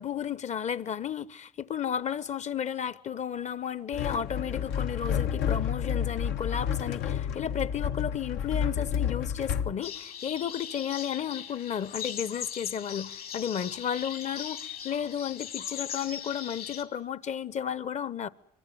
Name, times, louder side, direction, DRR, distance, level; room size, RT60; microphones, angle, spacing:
voice 1, 0.0-18.3, left 8 dB, 45° left, 1.1 m, -33 dB
sound 1, 3.9-9.7, left 8 dB, 80° left, 1.2 m, -30 dB
sound 2, 9.8-16.8, left 8 dB, 60° left, 3.1 m, -39 dB
24.5 x 24.0 x 9.3 m
cardioid pair, 110°, 17 cm